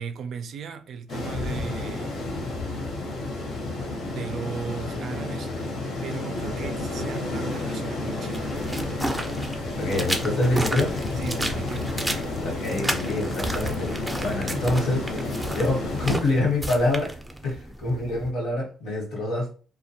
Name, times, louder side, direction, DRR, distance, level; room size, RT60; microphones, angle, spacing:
voice 1, 0.0-2.3 4.1-5.5 6.0-8.6 11.2-11.9 14.6-14.7, right 6 dB, 65° right, 0.3 m, -37 dB
sound 1, 1.1-16.1, left 2 dB, 65° left, 0.8 m, -31 dB
sound 2, 8.3-18.3, right 1 dB, 10° right, 0.5 m, -33 dB
voice 2, 9.8-10.9 12.4-15.0 15.5-17.2 17.4-19.5, left 2 dB, 85° left, 1.1 m, -26 dB
2.2 x 2.1 x 2.7 m
cardioid pair, 90°, 0 cm